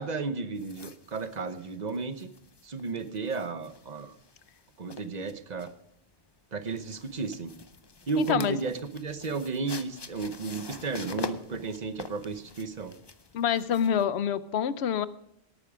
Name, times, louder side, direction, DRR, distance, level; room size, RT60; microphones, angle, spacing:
voice 1, 0.0-2.3 2.6-4.1 4.8-5.7 6.5-7.5 8.1-12.9, right 4 dB, 40° right, 11 dB, 1.0 m, -33 dB
sound 1, 0.6-14.0, left 4 dB, 30° left, 0.6 m, -45 dB
voice 2, 8.2-8.6 13.3-15.1, left 8 dB, 70° left, 16 dB, 0.9 m, -26 dB
17.5 x 9.1 x 5.0 m, 0.78 s
omnidirectional pair, 1.1 m